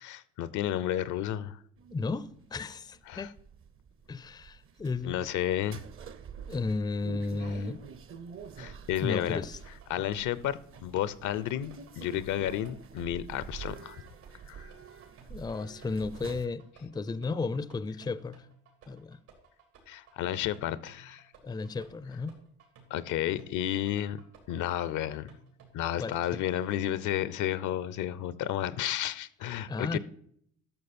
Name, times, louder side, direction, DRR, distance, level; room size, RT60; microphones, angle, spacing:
voice 1, 0.0-1.6 3.1-3.3 5.0-5.8 8.6-9.4 9.9-14.0 14.5-14.7 19.9-21.2 22.9-24.2 24.5-25.3 25.7-30.0, left 11 dB, 65° left, 0.6 m, -32 dB
sound 1, 1.8-16.5, right 6 dB, 40° right, 0.7 m, -47 dB
voice 2, 1.9-3.3 4.1-5.2 6.5-7.8 9.0-9.6 15.3-18.5 18.9-19.2 21.4-22.4 26.0-26.4 29.7-30.0, left 3 dB, 15° left, 0.5 m, -34 dB
sound 2, 9.3-26.9, right 4 dB, 85° right, 3.4 m, -58 dB
12.0 x 6.3 x 4.2 m
cardioid pair, 90°, 32 cm